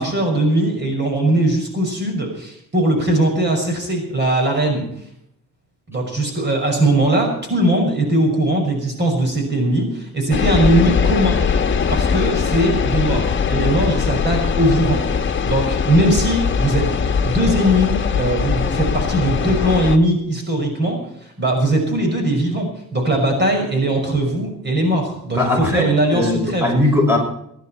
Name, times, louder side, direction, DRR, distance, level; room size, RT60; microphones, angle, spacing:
voice 1, 0.0-4.9 5.9-11.4 11.9-15.0 15.4-16.9 17.2-26.7, right 1 dB, 35° right, 2 dB, 5.7 m, -19 dB
sound 1, 10.3-20.0, left 6 dB, 40° left, 1.4 m, -20 dB
voice 2, 25.3-27.2, left 1 dB, 10° right, 0 dB, 5.8 m, -19 dB
23.0 x 11.5 x 4.4 m, 0.72 s
cardioid pair, 90°, 30 cm